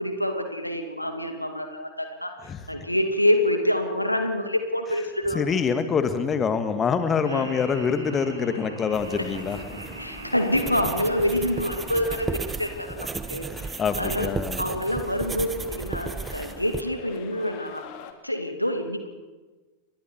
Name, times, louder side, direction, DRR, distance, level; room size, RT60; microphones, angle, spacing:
voice 1, 0.0-2.3 2.7-5.4 7.3-7.5 9.2-9.3 10.0-14.3 14.6-17.8 18.2-19.1, left 1 dB, 90° left, 6 dB, 2.5 m, -26 dB
voice 2, 5.3-9.6 13.5-14.6, left 6 dB, 20° left, 9 dB, 1.9 m, -25 dB
Laughter, 7.2-13.4, right 2 dB, 80° right, 5.8 m, -41 dB
sound 1, 8.9-16.8, right 4 dB, 15° right, 1.2 m, -35 dB
sound 2, 9.2-18.1, left 9 dB, 45° left, 2.5 m, -47 dB
29.5 x 23.5 x 4.6 m, 1.3 s
figure-of-eight pair, 90°, 0 cm